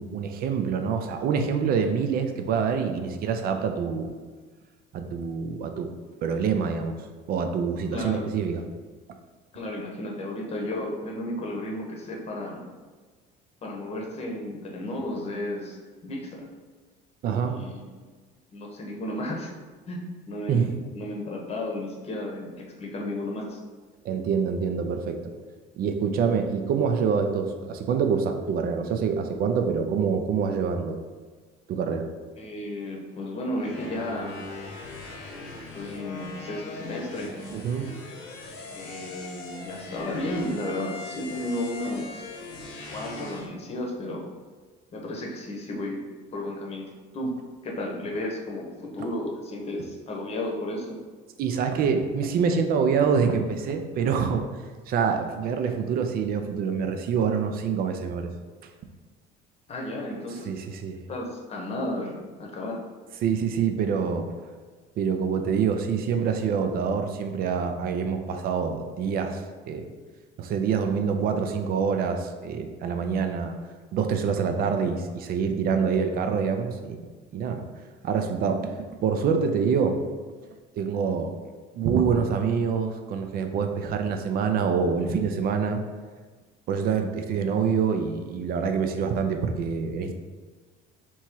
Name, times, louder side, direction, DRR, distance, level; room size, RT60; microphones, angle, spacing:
voice 1, 0.0-4.1 4.9-5.9 6.2-8.6 17.2-17.6 20.5-20.7 24.0-25.3 25.8-31.0 31.7-32.1 37.5-37.9 51.4-54.4 54.9-58.3 60.5-61.0 63.2-64.3 65.0-69.9 70.4-73.5 73.9-77.1 77.3-77.6 78.0-78.7 79.0-80.0 80.8-81.3 81.7-85.8 86.7-90.1, right 6 dB, 50° right, 6 dB, 0.5 m, -26 dB
voice 2, 7.9-8.3 9.5-12.6 13.6-15.8 16.0-16.4 17.4-17.9 18.5-19.5 19.9-22.5 22.8-23.6 32.4-34.3 35.4-37.3 38.7-42.3 42.9-44.3 44.9-46.0 46.3-47.4 47.6-51.0 59.7-60.5 61.1-62.8, left 1 dB, 30° left, 0 dB, 0.9 m, -33 dB
sound 1, 33.6-43.5, left 3 dB, 75° left, 1.0 m, -40 dB
3.5 x 3.0 x 4.5 m, 1.4 s
cardioid pair, 130°, 20 cm